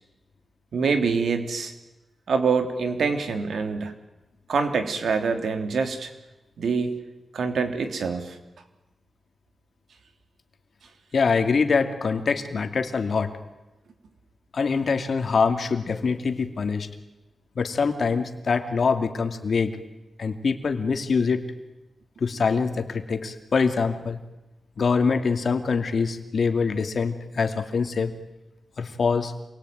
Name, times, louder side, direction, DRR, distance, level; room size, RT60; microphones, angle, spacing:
voice 1, 0.7-1.7 2.3-3.9 4.5-6.1 6.6-6.9 7.3-8.4, right 5 dB, 85° right, 7 dB, 3.3 m, -25 dB
voice 2, 11.1-13.3 14.5-16.9 17.6-19.8 20.2-21.4 22.2-24.2 24.8-28.1 28.8-29.3, left 5 dB, 60° left, 7 dB, 2.6 m, -24 dB
28.0 x 22.5 x 9.4 m, 1.0 s
wide cardioid pair, 95°, 0 cm